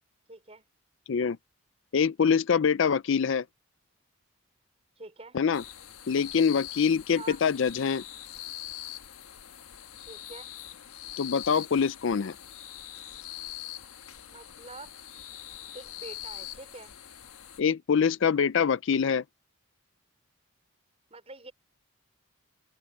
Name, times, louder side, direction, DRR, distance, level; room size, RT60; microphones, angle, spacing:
voice 1, 0.3-0.7 5.0-5.4 7.2-7.4 10.0-10.5 14.2-14.9 15.7-17.0 21.1-21.5, right 3 dB, 30° right, 5.2 m, -46 dB
voice 2, 1.9-3.4 5.3-5.6 6.1-8.0 11.2-12.3 17.6-19.2, left 6 dB, 60° left, 0.4 m, -24 dB
sound 1, 5.5-17.6, left 12 dB, 90° left, 1.3 m, -43 dB
open air
head